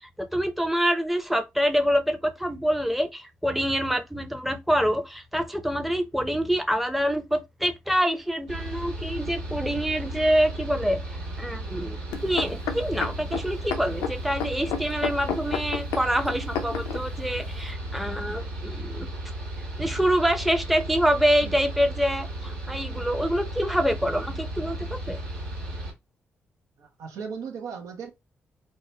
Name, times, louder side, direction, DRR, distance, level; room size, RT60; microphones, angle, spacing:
voice 1, 0.2-11.0 11.4-12.0 12.2-19.1 19.8-25.2, equal, ahead, 0.6 m, -26 dB
Mechanical fan, 8.5-25.9, right 1 dB, 90° right, 1.4 m, -35 dB
sound 1, 12.1-17.0 17.7-17.8, left 7 dB, 80° left, 0.5 m, -31 dB
voice 2, 26.8-28.1, right 6 dB, 75° right, 0.7 m, -37 dB
2.9 x 2.2 x 2.8 m
hypercardioid pair, 40°, 6 cm